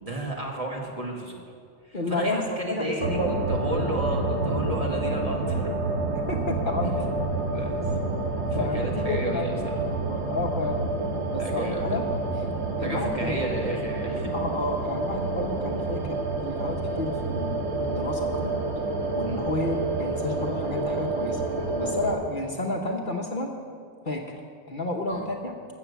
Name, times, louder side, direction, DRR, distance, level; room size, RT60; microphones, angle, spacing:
voice 1, 0.0-1.4 1.8-5.7 7.5-7.8 8.5-9.5 11.4-12.0 12.8-14.3 25.1-25.2, right 1 dB, 30° right, -1 dB, 1.7 m, -33 dB
voice 2, 1.9-3.3 6.3-7.0 8.6-10.8 11.3-12.0 12.8-13.5 14.3-18.6 19.1-23.5 24.0-24.4 24.7-25.7, left 2 dB, 45° left, 2 dB, 1.0 m, -31 dB
sound 1, 3.0-22.1, right 2 dB, 70° right, 1.4 m, -28 dB
14.5 x 7.0 x 7.0 m, 2.3 s
omnidirectional pair, 1.2 m